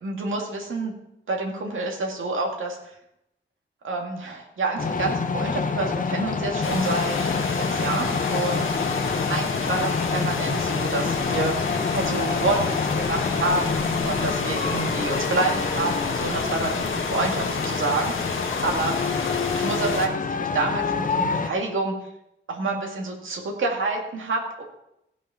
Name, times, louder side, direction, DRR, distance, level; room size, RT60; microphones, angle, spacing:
voice 1, 0.0-0.9 1.3-3.0 3.8-8.7 9.3-19.0 19.5-21.9 22.5-24.6, right 3 dB, 75° right, 0 dB, 2.2 m, -28 dB
sound 1, 4.8-21.5, left 5 dB, 40° left, 0.7 m, -28 dB
sound 2, 6.6-20.1, left 4 dB, 80° left, 1.7 m, -29 dB
16.5 x 6.4 x 5.8 m, 0.82 s
wide cardioid pair, 145°, 21 cm